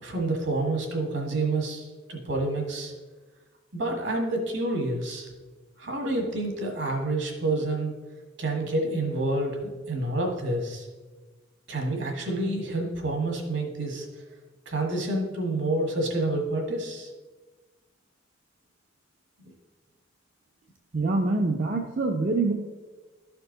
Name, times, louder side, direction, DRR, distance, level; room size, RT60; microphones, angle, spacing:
voice 1, 0.0-2.9 3.7-5.3 5.8-7.9 8.4-10.9 11.7-14.1 14.6-17.1 19.4-19.5, right 2 dB, 60° right, 1 dB, 1.7 m, -28 dB
voice 2, 20.9-22.5, right 3 dB, 40° right, 1 dB, 0.6 m, -25 dB
12.5 x 4.5 x 3.9 m, 1.3 s
head